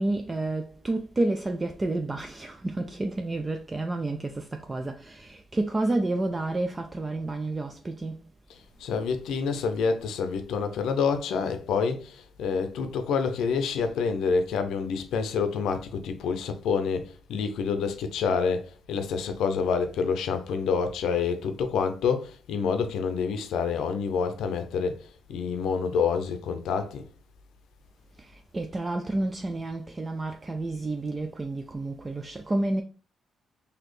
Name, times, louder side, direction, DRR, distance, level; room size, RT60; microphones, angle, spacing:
voice 1, 0.0-8.3 28.2-32.8, right 2 dB, 25° right, 0.4 m, -30 dB
voice 2, 8.8-27.0, left 5 dB, 85° left, 0.5 m, -27 dB
4.1 x 2.8 x 3.1 m
cardioid pair, 95°, 0 cm